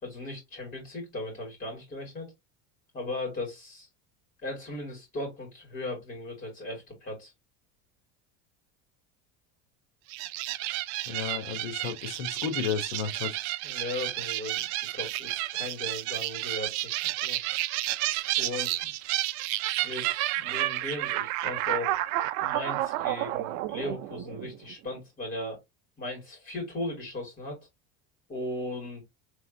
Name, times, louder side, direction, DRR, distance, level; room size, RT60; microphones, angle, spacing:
voice 1, 0.0-2.3 2.9-3.9 4.4-7.3 13.6-16.9 17.2-17.4 18.4-18.9 19.8-22.0 22.4-25.6 26.0-27.6 28.3-29.0, left 2 dB, 25° left, 3.1 m, -37 dB
sound 1, 10.1-24.7, right 17 dB, 60° right, 0.5 m, -31 dB
voice 2, 11.1-13.4, left 7 dB, 85° left, 1.2 m, -33 dB
4.2 x 3.4 x 2.7 m
cardioid pair, 135°, 31 cm